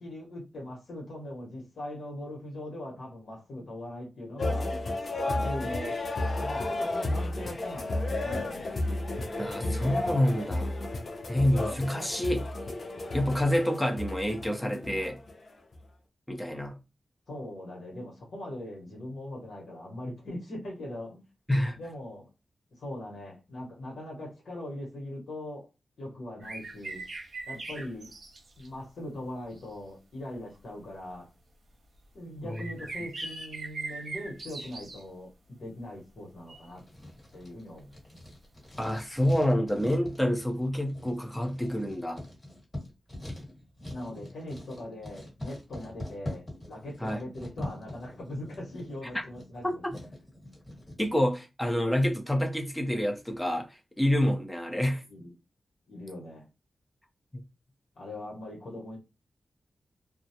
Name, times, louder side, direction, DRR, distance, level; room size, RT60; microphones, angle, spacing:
voice 1, 0.0-4.8 5.2-6.0 6.4-8.8 17.3-21.2 21.8-22.3 22.7-25.7 26.0-27.0 27.5-28.1 28.6-31.3 32.1-36.8 37.3-37.9 43.9-49.8 55.1-55.3 55.9-56.4 58.0-59.0, left 1 dB, 80° left, 1.1 m, -40 dB
sound 1, 4.4-15.8, left 2 dB, 60° left, 0.5 m, -32 dB
voice 2, 9.4-10.7 11.3-12.5 13.1-15.2 16.3-16.8 21.5-21.8 32.4-32.6 38.8-42.2 47.0-47.2 49.1-49.3 49.6-49.9 51.0-55.0 57.3-57.4, left 1 dB, 10° left, 0.6 m, -28 dB
sound 2, 26.4-28.7 29.6-29.7 30.6-30.7 32.5-35.0 36.5-36.7 39.3-39.4, right 3 dB, 65° right, 0.7 m, -40 dB
Writing, 36.7-51.1, left 1 dB, 30° left, 1.5 m, -43 dB
2.3 x 2.1 x 2.7 m
cardioid pair, 75°, 0 cm